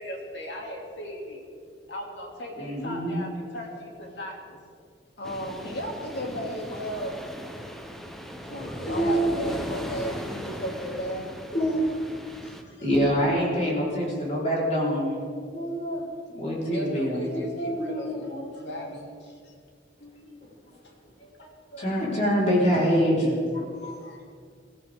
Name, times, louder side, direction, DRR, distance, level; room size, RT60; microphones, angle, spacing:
voice 1, 0.0-1.4 1.9-4.6 8.4-9.2 12.4-13.1 15.5-15.8 16.3-18.3 18.6-19.3 20.0-20.4 21.2-22.2 24.0-24.2, equal, 85° left, 0 dB, 2.8 m, -40 dB
voice 2, 2.6-3.2 8.9-9.4 11.5-11.8 12.8-15.1 15.5-16.0 16.3-18.4 18.8-18.9 21.8-23.9, equal, 40° left, -5 dB, 4.5 m, -25 dB
voice 3, 5.2-7.2 8.9-11.3, equal, 65° left, 0 dB, 2.9 m, -33 dB
sound 1, 5.2-12.6, equal, ahead, 1.1 m, -38 dB
21.0 x 14.5 x 3.7 m, 2.1 s
head